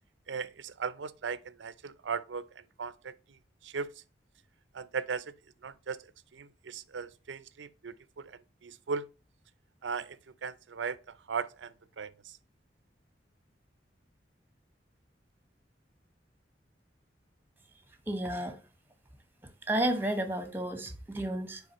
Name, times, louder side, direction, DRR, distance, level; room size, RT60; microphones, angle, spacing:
voice 1, 0.3-3.1 3.6-3.9 4.7-5.3 5.6-6.0 6.3-9.1 9.8-12.4, right 5 dB, 85° right, 0.5 m, -38 dB
voice 2, 18.1-18.6 19.7-21.6, right 1 dB, 10° right, 1.0 m, -31 dB
9.9 x 3.5 x 3.0 m
head